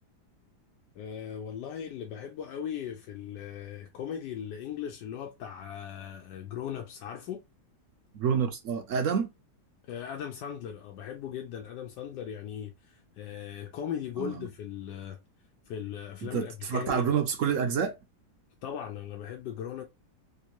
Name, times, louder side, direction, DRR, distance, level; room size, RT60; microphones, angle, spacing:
voice 1, 1.0-7.4 9.8-15.2 15.7-17.1 18.6-19.9, left 9 dB, 85° left, 1.2 m, -38 dB
voice 2, 8.1-9.3 14.2-14.4 16.2-18.0, right 7 dB, 65° right, 0.8 m, -28 dB
3.5 x 2.6 x 2.8 m
omnidirectional pair, 1.8 m